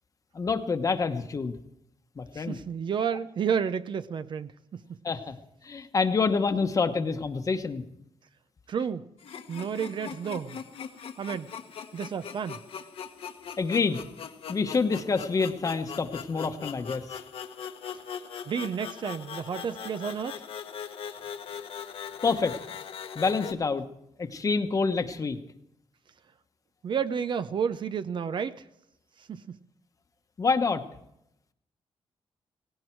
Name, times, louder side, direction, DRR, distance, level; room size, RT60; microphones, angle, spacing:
voice 1, 0.3-1.6 2.2-2.6 5.0-5.3 5.6-7.8 13.6-14.0 14.5-17.0 22.2-22.6 23.1-23.8 24.2-25.4 30.4-30.8, left 4 dB, 35° left, 8 dB, 1.1 m, -27 dB
voice 2, 2.3-5.0 8.7-9.1 9.5-10.6 11.2-11.5 11.9-12.6 18.5-20.4 26.8-28.6 29.3-29.6, right 7 dB, 55° right, 13 dB, 0.6 m, -31 dB
sound 1, 9.2-23.5, left 7 dB, 70° left, 1.2 m, -41 dB
18.0 x 17.0 x 4.6 m, 0.79 s
wide cardioid pair, 155°, 10 cm